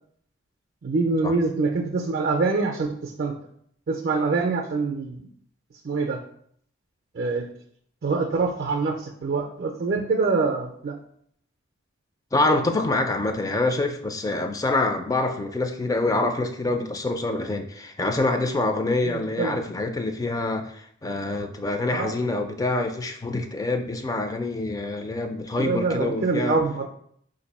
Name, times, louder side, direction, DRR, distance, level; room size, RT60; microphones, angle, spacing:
voice 1, 0.8-3.3 3.9-5.2 5.8-6.2 7.1-7.5 8.0-11.0 19.1-19.5 21.9-22.2 25.6-26.9, right 4 dB, 50° right, 3 dB, 0.4 m, -25 dB
voice 2, 12.3-26.6, left 2 dB, 20° left, 6 dB, 0.3 m, -26 dB
4.5 x 2.6 x 4.1 m, 0.66 s
head